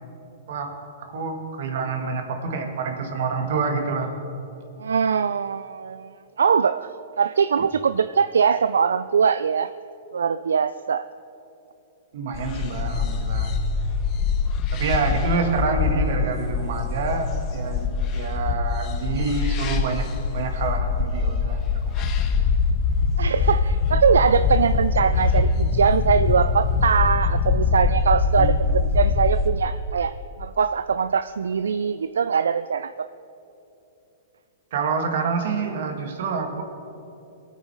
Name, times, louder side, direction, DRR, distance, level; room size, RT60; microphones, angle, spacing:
voice 1, 1.1-4.1 12.1-13.6 14.7-20.1 20.3-22.5 28.4-28.6 34.7-36.6, right 4 dB, 65° right, 4 dB, 2.1 m, -27 dB
voice 2, 4.8-6.1 6.4-6.9 7.2-9.7 10.1-11.0 23.2-30.1 30.4-33.1, right 6 dB, 85° right, 13 dB, 0.3 m, -22 dB
sound 1, 12.3-29.5, left 5 dB, 35° left, 1.3 m, -23 dB
22.0 x 9.1 x 4.8 m, 2.8 s
hypercardioid pair, 120°, 0 cm